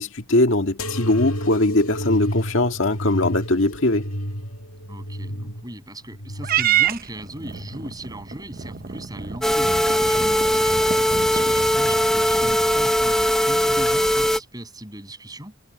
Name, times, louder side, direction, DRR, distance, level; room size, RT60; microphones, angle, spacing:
voice 1, 0.0-4.1, left 2 dB, 65° left, 1.9 m, -21 dB
sound 1, 0.8-8.0 8.5-9.3 10.1-10.6 11.6-11.7, equal, 85° left, 2.3 m, -32 dB
voice 2, 4.9-15.6, right 1 dB, 20° right, 7.6 m, -38 dB
Purr / Meow, 6.4-12.9, right 10 dB, 45° right, 0.8 m, -28 dB
sound 2, 9.4-14.4, equal, 5° left, 0.9 m, -20 dB
head